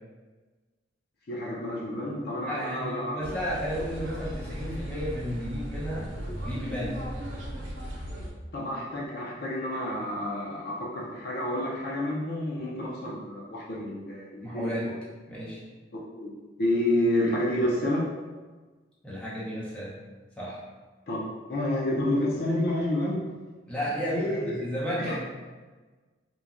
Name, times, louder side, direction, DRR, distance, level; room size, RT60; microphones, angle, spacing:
voice 1, 1.3-3.2 8.5-14.9 15.9-16.3 16.6-18.1 21.1-21.2 21.5-23.2 24.1-24.6 25.0-25.2, left 1 dB, 55° left, -4 dB, 0.4 m, -29 dB
voice 2, 2.5-6.1 6.4-7.0 14.4-14.9 15.3-15.6 19.0-20.0 20.4-20.6 23.7-25.2, equal, 5° left, -8 dB, 0.6 m, -33 dB
sound 1, 3.2-8.3, equal, 75° right, 0.6 m, -37 dB
3.0 x 2.2 x 2.4 m, 1.3 s
head